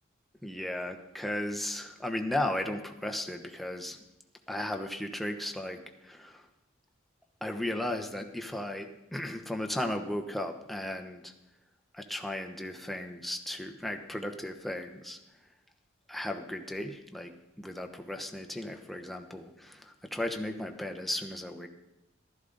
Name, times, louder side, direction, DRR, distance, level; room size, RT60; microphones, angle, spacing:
voice 1, 0.4-4.0 4.5-5.8 6.0-6.5 7.4-11.3 11.9-15.2 16.1-17.3 17.6-21.7, left 1 dB, ahead, 3 dB, 0.9 m, -35 dB
15.0 x 12.5 x 4.0 m, 0.92 s
head